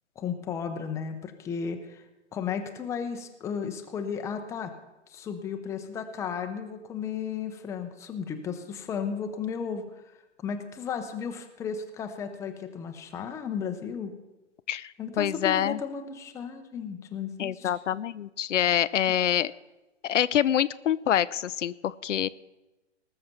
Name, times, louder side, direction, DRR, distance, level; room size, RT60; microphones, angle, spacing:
voice 1, 0.2-2.0 2.3-4.7 5.1-9.8 10.4-14.1 15.0-17.7, left 6 dB, 10° left, 6 dB, 0.6 m, -34 dB
voice 2, 14.7-15.8 17.4-19.5 20.0-22.3, left 10 dB, 85° left, 16 dB, 0.5 m, -26 dB
19.0 x 6.6 x 5.8 m, 1.1 s
hypercardioid pair, 130°, 36 cm